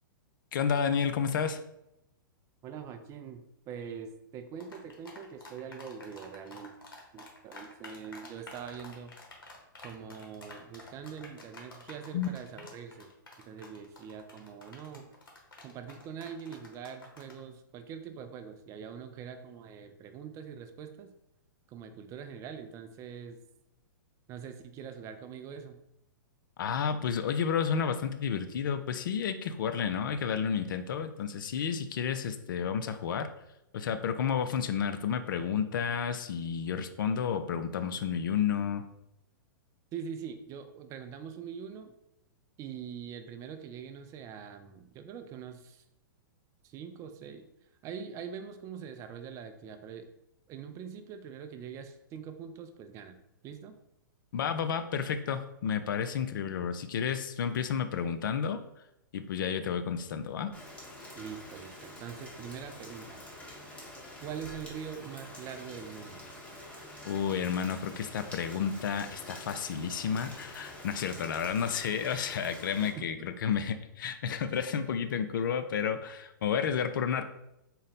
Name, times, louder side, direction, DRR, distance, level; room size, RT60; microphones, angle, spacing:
voice 1, 0.5-1.6 12.1-12.3 26.6-33.3 33.7-38.8 54.3-58.6 59.1-60.5 67.0-77.2, left 7 dB, 70° left, 10 dB, 0.4 m, -31 dB
voice 2, 2.6-6.8 7.1-9.2 9.8-13.1 13.4-15.1 15.6-21.1 21.7-23.4 24.3-25.8 39.9-41.9 42.6-45.8 46.6-47.5 47.8-50.1 50.5-53.2 53.4-53.7 61.2-63.2 64.2-66.2 73.0-73.3, right 7 dB, 25° right, 8 dB, 0.3 m, -43 dB
sound 1, 4.6-17.4, left 2 dB, 85° left, 1.0 m, -49 dB
Rain, 60.5-72.9, left 1 dB, 10° left, 0.9 m, -47 dB
3.9 x 2.1 x 4.0 m, 0.83 s
hypercardioid pair, 120°, 11 cm